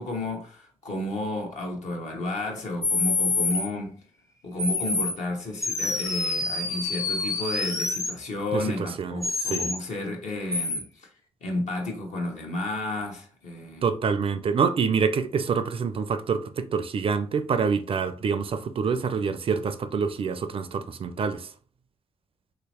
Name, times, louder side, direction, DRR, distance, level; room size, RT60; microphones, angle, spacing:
voice 1, 0.0-4.0 4.4-11.1 11.4-13.9, left 2 dB, 65° left, 1.1 m, -32 dB
sound 1, 2.8-3.7 4.6-5.1 5.6-8.1 9.2-9.8 10.5-10.8, left 3 dB, 25° left, 0.8 m, -27 dB
voice 2, 8.5-9.2 9.5-9.7 13.8-21.5, right 5 dB, 45° right, 0.4 m, -26 dB
3.1 x 2.9 x 2.9 m
hypercardioid pair, 45°, 13 cm